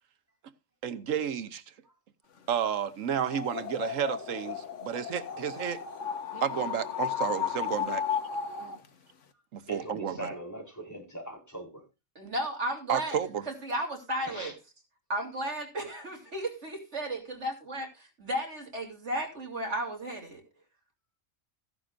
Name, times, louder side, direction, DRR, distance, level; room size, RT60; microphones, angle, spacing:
voice 1, 0.8-1.6 2.5-5.8 6.3-8.0 9.5-10.3 12.9-13.4, right 8 dB, 85° right, 1.3 m, -31 dB
sound 1, 3.1-8.9, left 8 dB, 70° left, 1.5 m, -34 dB
voice 2, 9.7-11.8 14.2-14.5, right 1 dB, 15° left, 4.6 m, -41 dB
voice 3, 12.1-13.2 13.5-14.5 15.1-20.4, right 1 dB, 60° right, 3.4 m, -34 dB
15.5 x 11.0 x 2.5 m
omnidirectional pair, 1.3 m